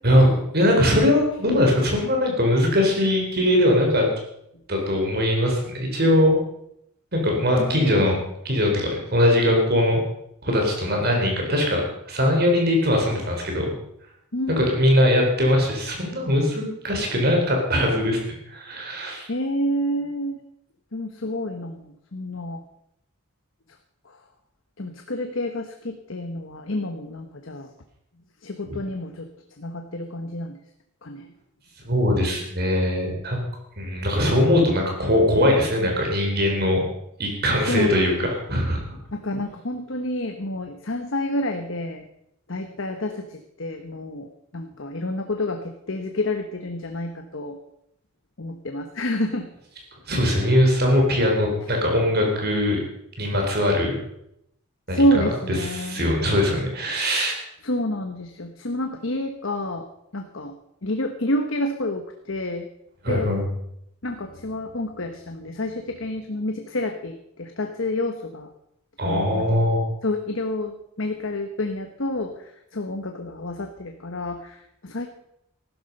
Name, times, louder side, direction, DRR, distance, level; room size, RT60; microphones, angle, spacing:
voice 1, 0.0-4.1 4.7-6.4 7.1-8.2 8.4-10.0 10.4-11.8 12.1-13.7 14.5-19.3 28.7-28.8 31.9-33.4 33.8-36.8 37.2-38.8 50.1-52.8 53.2-53.9 54.9-55.0 55.6-57.4 63.0-63.4 69.0-69.8, left 1 dB, 45° right, 1 dB, 4.1 m, -21 dB
voice 2, 7.6-8.1 14.3-15.0 19.3-20.4 20.9-22.6 24.8-27.7 28.4-29.3 29.6-30.6 31.0-31.3 37.7-38.2 39.1-42.1 42.5-47.6 48.4-49.5 54.9-56.1 57.6-59.8 60.1-60.5 60.8-62.7 63.1-63.3 64.0-68.5 69.0-69.4 70.0-72.3 72.7-75.1, left 1 dB, 65° left, 5 dB, 1.2 m, -28 dB
15.0 x 12.5 x 5.4 m, 0.77 s
head